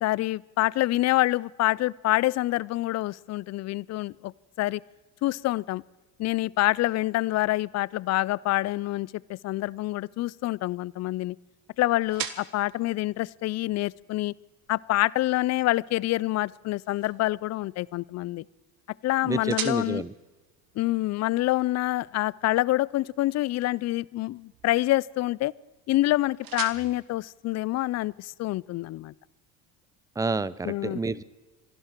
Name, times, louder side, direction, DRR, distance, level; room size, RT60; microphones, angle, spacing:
voice 1, 0.0-4.3 4.6-4.8 5.2-5.8 6.2-11.4 11.8-14.3 14.7-18.4 19.0-20.0 20.8-25.5 25.9-29.1 30.6-31.0, left 17 dB, 40° left, 24 dB, 0.4 m, -26 dB
sound 1, 9.4-28.3, right 10 dB, 55° right, 1.7 m, -45 dB
voice 2, 19.2-20.1 30.2-31.2, right 3 dB, 10° right, 19 dB, 0.5 m, -29 dB
26.5 x 11.5 x 4.5 m, 1.3 s
supercardioid pair, 80°, 41 cm